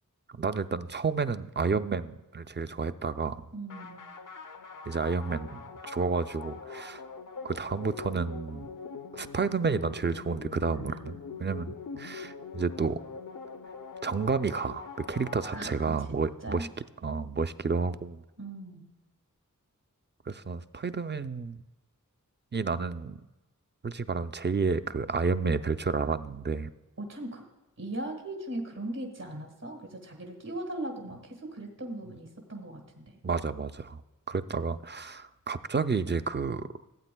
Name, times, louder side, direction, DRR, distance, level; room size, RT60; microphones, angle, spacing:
voice 1, 0.3-3.5 4.9-7.0 7.4-8.7 9.1-13.0 14.0-16.7 17.0-18.2 20.3-21.6 22.5-23.2 23.8-26.7 33.2-34.0 34.3-36.7, right 4 dB, 35° right, 12 dB, 0.4 m, -30 dB
voice 2, 3.5-4.1 10.7-11.7 15.5-15.7 16.1-16.7 18.4-18.8 27.0-27.4 27.8-33.2, right 1 dB, 75° right, 2 dB, 1.7 m, -39 dB
sound 1, 3.7-16.2, left 5 dB, 70° left, 0.6 m, -43 dB
16.0 x 8.4 x 2.2 m, 1.1 s
wide cardioid pair, 40°, 33 cm